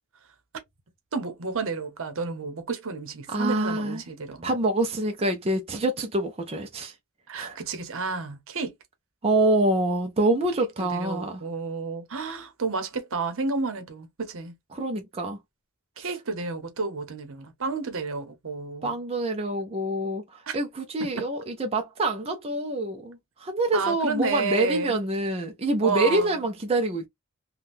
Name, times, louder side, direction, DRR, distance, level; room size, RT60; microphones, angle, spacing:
voice 1, 1.1-4.6 7.3-8.7 10.8-14.5 16.0-18.9 20.5-20.6 23.7-25.0 25.8-26.3, right 4 dB, 65° right, 0.9 m, -31 dB
voice 2, 3.3-4.0 4.4-6.9 7.3-7.6 9.2-11.4 14.7-15.4 16.0-16.2 18.8-27.1, right 2 dB, 25° right, 0.5 m, -26 dB
3.5 x 2.3 x 2.6 m
head